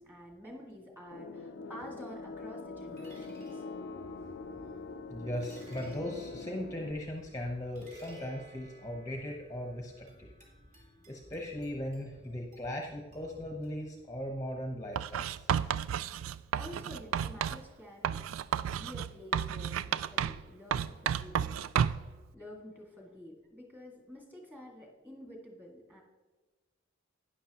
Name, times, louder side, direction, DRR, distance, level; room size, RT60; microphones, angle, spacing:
voice 1, 0.0-3.6 16.5-18.2 18.6-21.6 22.3-26.0, left 1 dB, 10° right, -1 dB, 2.0 m, -49 dB
sound 1, 1.1-6.9, left 3 dB, 60° left, 0.5 m, -43 dB
sound 2, 2.1-14.2, right 1 dB, 40° right, 3.5 m, -57 dB
voice 2, 5.1-10.3 11.1-15.5, left 1 dB, 15° left, 1 dB, 0.8 m, -38 dB
Writing, 15.0-17.6 18.0-20.5 20.7-22.1, right 8 dB, 90° right, 0.3 m, -32 dB
12.0 x 9.8 x 2.9 m, 1.3 s
head